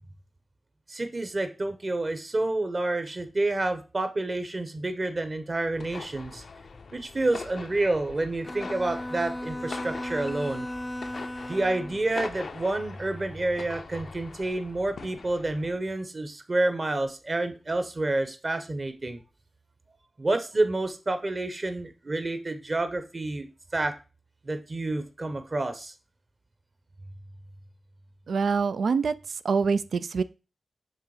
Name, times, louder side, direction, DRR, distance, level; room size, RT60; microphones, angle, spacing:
voice 1, 0.9-6.4 6.9-10.7 11.5-19.2 20.2-23.5 23.7-23.9 24.4-25.9, right 2 dB, 40° right, 1.1 m, -29 dB
sound 1, 5.7-15.8, left 4 dB, 70° left, 0.5 m, -42 dB
Bowed string instrument, 8.4-12.1, left 1 dB, 10° left, 0.4 m, -36 dB
voice 2, 28.3-29.1 29.4-30.2, right 5 dB, 85° right, 0.3 m, -25 dB
6.6 x 3.6 x 4.9 m
cardioid pair, 60°, 0 cm